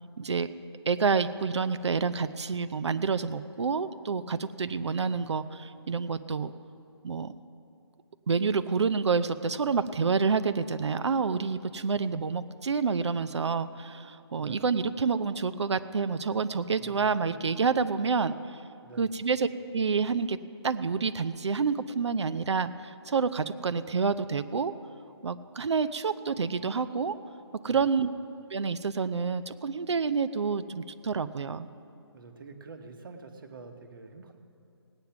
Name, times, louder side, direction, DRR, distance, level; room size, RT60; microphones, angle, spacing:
voice 1, 0.2-0.5 0.9-6.5 7.0-7.3 8.3-18.4 19.0-19.5 19.7-20.4 20.6-24.7 25.2-27.2 27.6-28.1 28.5-31.7, right 5 dB, 75° right, 12 dB, 0.6 m, -28 dB
voice 2, 14.3-14.7 16.8-17.5 18.8-19.2 27.6-27.9 32.1-34.4, right 4 dB, 50° right, 5 dB, 1.3 m, -48 dB
17.5 x 9.1 x 5.9 m, 2.7 s
hypercardioid pair, 165°, 15 cm